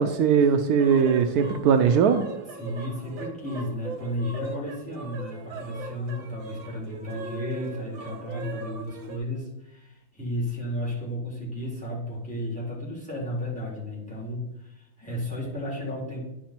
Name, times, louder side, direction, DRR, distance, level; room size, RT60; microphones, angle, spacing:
voice 1, 0.0-2.2, right 6 dB, 85° right, 7 dB, 0.8 m, -20 dB
sound 1, 0.8-9.2, right 3 dB, 70° right, 1.6 m, -39 dB
voice 2, 2.6-16.2, left 1 dB, 5° left, -5 dB, 3.5 m, -33 dB
10.5 x 4.9 x 4.4 m, 0.87 s
omnidirectional pair, 2.2 m